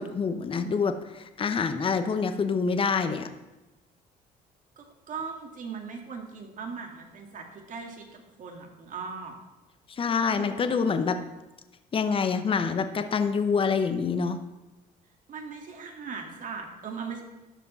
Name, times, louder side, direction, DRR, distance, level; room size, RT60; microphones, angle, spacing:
voice 1, 0.0-3.3 10.0-11.2 11.9-14.4, left 5 dB, 30° left, 9 dB, 0.8 m, -26 dB
voice 2, 4.8-9.3 10.2-10.9 15.3-17.2, right 5 dB, 50° right, 3 dB, 2.0 m, -39 dB
12.5 x 5.0 x 5.5 m, 1.0 s
cardioid pair, 110°, 17 cm